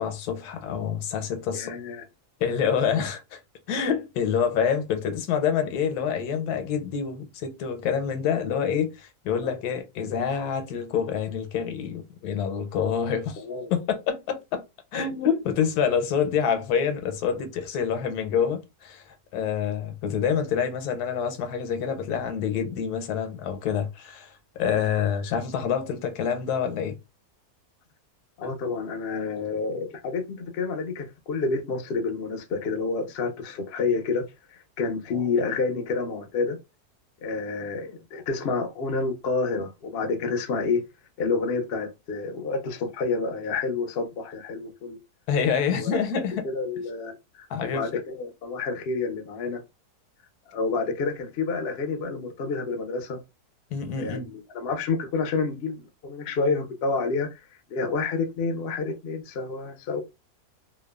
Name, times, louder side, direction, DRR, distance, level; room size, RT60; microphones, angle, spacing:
voice 1, 0.0-1.7 2.4-3.4 3.7-13.4 13.7-14.6 14.9-27.0 45.3-46.5 47.5-47.9 53.7-54.3, left 7 dB, 85° left, 1.1 m, -27 dB
voice 2, 1.5-2.0 2.9-3.0 9.4-9.5 13.4-13.7 28.4-36.6 37.2-40.8 41.2-45.0 45.8-46.0 46.4-49.6 50.5-53.2 54.0-57.4 57.7-60.0, left 4 dB, 65° left, 0.6 m, -29 dB
2.8 x 2.2 x 2.2 m
omnidirectional pair, 1.6 m